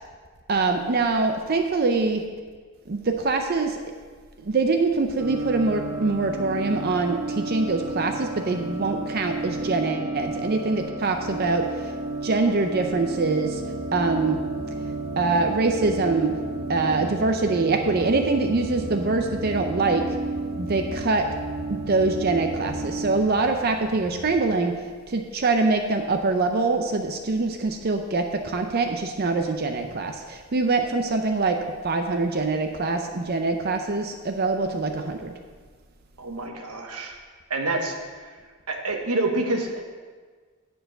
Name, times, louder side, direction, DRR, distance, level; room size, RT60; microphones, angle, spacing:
voice 1, 0.5-2.2 2.9-3.8 4.4-11.9 12.2-13.6 13.9-14.4 15.2-16.3 16.7-20.2 20.6-21.3 21.7-35.3, right 3 dB, 45° right, 5 dB, 0.5 m, -24 dB
sound 1, 5.2-23.2, right 2 dB, 65° right, 1.5 m, -32 dB
sound 2, 13.5-24.6, left 1 dB, 70° left, 0.6 m, -41 dB
voice 2, 36.2-37.2 37.5-38.1 38.7-39.9, right 2 dB, 85° right, 3 dB, 1.2 m, -27 dB
10.0 x 4.6 x 6.5 m, 1.5 s
head